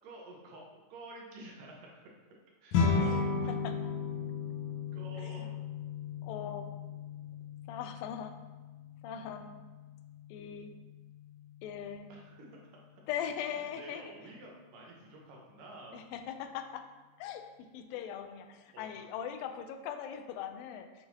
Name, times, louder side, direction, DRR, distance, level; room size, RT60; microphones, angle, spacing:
voice 1, 0.0-1.9 2.6-3.5 4.9-5.6 12.1-12.5 12.9-13.0 13.8-16.0 18.7-19.1, right 2 dB, 75° right, -2 dB, 2.7 m, -50 dB
sound 1, 2.7-12.2, left 5 dB, 70° left, 1.8 m, -36 dB
voice 2, 3.0-3.8 5.2-5.4 6.2-6.7 7.7-8.4 9.0-9.6 10.3-10.8 11.6-12.1 13.1-14.0 15.9-16.9 17.2-17.5 17.7-21.1, left 8 dB, 90° left, 7 dB, 2.3 m, -40 dB
7.9 x 5.6 x 2.8 m, 1.2 s
omnidirectional pair, 4.0 m